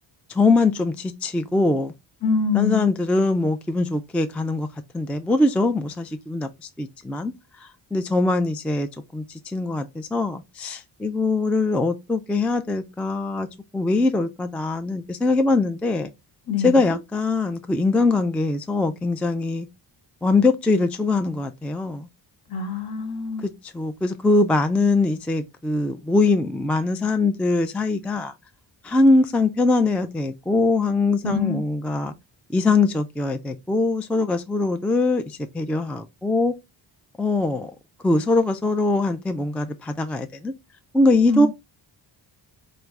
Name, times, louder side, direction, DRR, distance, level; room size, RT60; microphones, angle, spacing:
voice 1, 0.3-1.9 2.5-4.7 4.9-7.3 7.6-13.5 13.7-16.1 16.6-19.7 20.2-22.1 23.4-28.3 28.8-32.1 32.5-36.5 37.2-37.7 38.0-40.5 40.9-41.5, left 3 dB, 5° left, 0.3 m, -22 dB
voice 2, 2.2-2.9 16.5-17.0 22.5-23.5 31.2-31.6 41.3-41.5, left 6 dB, 55° left, 1.3 m, -24 dB
3.3 x 3.1 x 3.6 m
cardioid pair, 85°, 46 cm